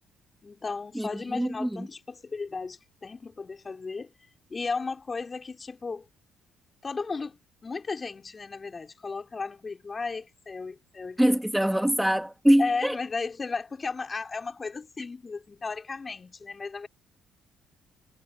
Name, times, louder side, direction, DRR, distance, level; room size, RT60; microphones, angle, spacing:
voice 1, 0.4-4.1 4.5-6.1 6.8-11.4 12.6-16.9, left 4 dB, 35° left, 6.1 m, -35 dB
voice 2, 0.9-1.9 11.2-13.0, equal, 5° right, 2.9 m, -24 dB
hypercardioid pair, 55°, 0 cm